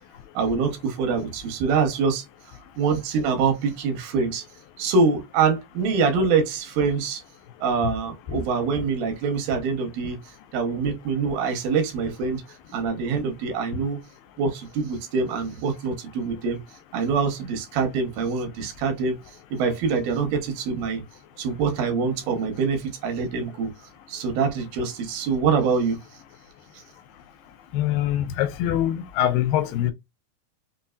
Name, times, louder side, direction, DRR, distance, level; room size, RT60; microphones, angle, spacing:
voice 1, 0.4-2.2 2.8-4.4 4.8-7.2 7.6-10.2 10.5-12.4 12.7-14.0 14.4-16.6 16.9-19.2 19.5-21.0 21.4-23.7 24.1-26.0, right 5 dB, 85° right, 2.8 m, -24 dB
voice 2, 27.7-29.9, left 11 dB, 80° left, 2.3 m, -23 dB
5.9 x 2.8 x 2.3 m
omnidirectional pair, 4.0 m